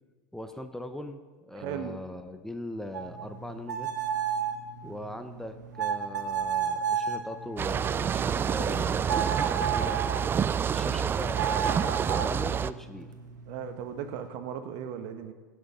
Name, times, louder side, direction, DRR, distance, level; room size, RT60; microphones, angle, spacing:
voice 1, 0.3-3.9 4.8-10.0 10.6-13.1, left 1 dB, 5° left, 8 dB, 0.7 m, -40 dB
voice 2, 1.5-2.0 13.5-15.3, right 8 dB, 60° right, 9 dB, 1.1 m, -37 dB
sound 1, 2.9-10.3 11.3-14.3, right 7 dB, 90° right, 1.1 m, -33 dB
sound 2, 7.6-12.7, right 7 dB, 25° right, 0.3 m, -28 dB
15.5 x 6.5 x 4.9 m, 1.4 s
hypercardioid pair, 95°, 9 cm